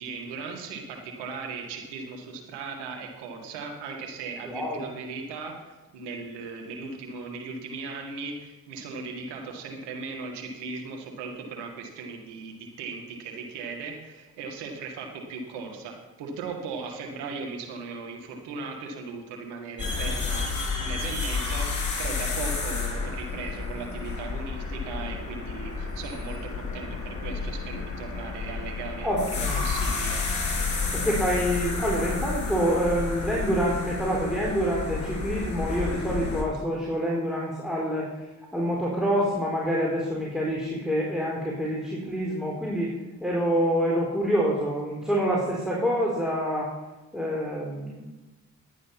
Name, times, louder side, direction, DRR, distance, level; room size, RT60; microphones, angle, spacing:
voice 1, 0.0-30.2, right 4 dB, 90° right, 2 dB, 2.0 m, -38 dB
voice 2, 4.5-4.9 29.0-29.6 30.9-38.1 38.5-42.9 43.2-46.7 47.1-48.0, equal, ahead, -4 dB, 4.0 m, -26 dB
sound 1, 19.8-36.4, left 4 dB, 45° left, 4.3 m, -31 dB
11.5 x 9.3 x 5.9 m, 1.1 s
hypercardioid pair, 40°, 40 cm